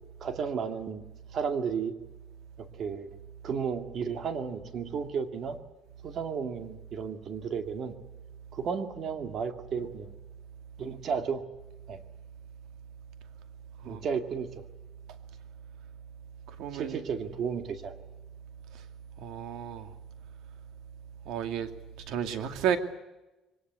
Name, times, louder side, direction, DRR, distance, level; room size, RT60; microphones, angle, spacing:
voice 1, 0.2-1.0 1.3-1.9 2.6-3.1 3.4-5.6 6.0-7.9 8.5-10.1 10.8-11.4 11.9-12.0 13.9-14.5 16.7-18.0, right 6 dB, 45° right, 7 dB, 2.2 m, -33 dB
voice 2, 16.6-17.0 19.2-19.9 21.3-21.7 22.1-22.8, right 9 dB, 80° right, 8 dB, 2.4 m, -31 dB
23.5 x 19.0 x 9.4 m, 1.0 s
cardioid pair, 145°, 0 cm